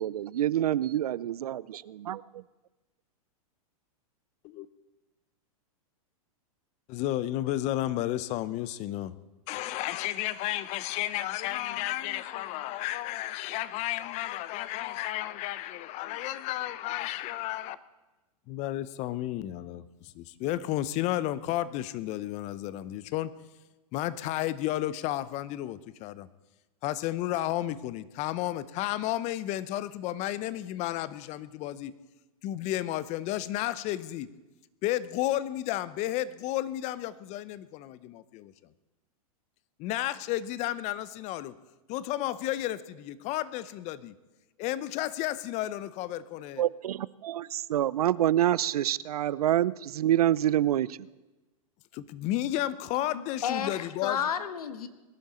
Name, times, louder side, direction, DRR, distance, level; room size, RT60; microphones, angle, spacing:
voice 1, 0.0-2.4 46.6-51.0, right 12 dB, 85° right, 21 dB, 0.5 m, -27 dB
voice 2, 6.9-9.2 9.5-17.8 18.5-23.3 23.9-26.3 26.8-32.0 32.4-34.3 34.8-38.5 39.8-41.6 41.9-44.1 44.6-46.6 51.9-54.2, left 14 dB, 35° left, 16 dB, 0.7 m, -32 dB
voice 3, 53.1-54.9, left 8 dB, 80° left, 11 dB, 1.4 m, -32 dB
21.5 x 12.0 x 4.3 m, 1.1 s
hypercardioid pair, 125°, 19 cm